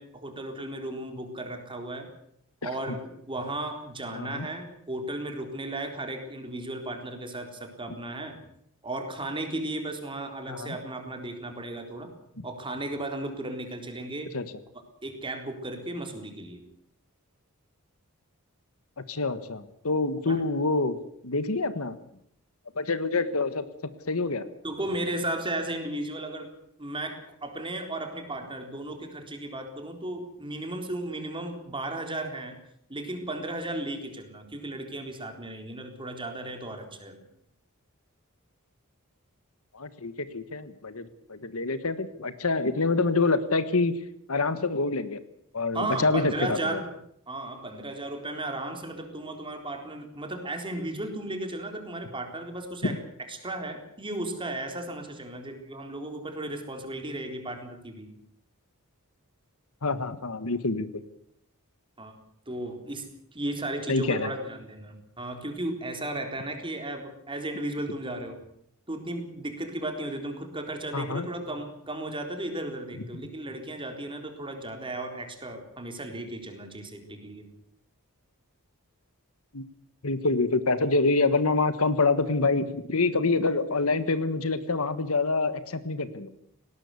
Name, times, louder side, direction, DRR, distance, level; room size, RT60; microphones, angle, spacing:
voice 1, 0.0-2.1 2.6-8.4 8.8-12.1 12.4-14.3 15.0-16.6 20.3-20.4 24.6-26.5 26.8-32.6 32.9-37.2 45.7-46.8 47.3-53.0 53.3-58.1 62.0-62.2 62.5-63.1 63.3-68.4 68.9-77.4, right 1 dB, 25° right, 5 dB, 4.0 m, -35 dB
voice 2, 2.6-2.9 4.1-4.5 10.5-10.8 12.4-12.5 14.3-14.4 19.0-21.0 21.2-22.0 22.7-23.6 24.1-24.5 39.7-44.0 44.3-45.2 45.5-46.8 59.8-60.9 63.9-64.3 70.9-71.3 79.5-79.6 80.0-86.3, left 3 dB, 70° left, 13 dB, 1.5 m, -26 dB
19.5 x 18.0 x 8.3 m, 0.73 s
head